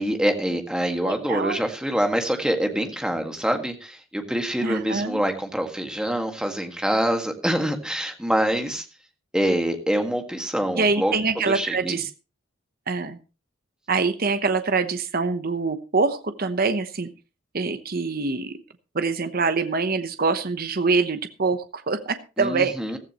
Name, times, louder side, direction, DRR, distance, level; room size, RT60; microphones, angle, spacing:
voice 1, 0.0-8.9 9.3-12.0 22.4-23.0, right 1 dB, 5° right, 4 dB, 1.9 m, -25 dB
voice 2, 1.0-1.6 4.6-5.2 10.8-12.1 12.9-13.2 13.9-17.1 17.5-18.5 18.9-22.7, right 4 dB, 45° right, 10 dB, 1.0 m, -24 dB
15.5 x 14.5 x 3.0 m, 0.31 s
head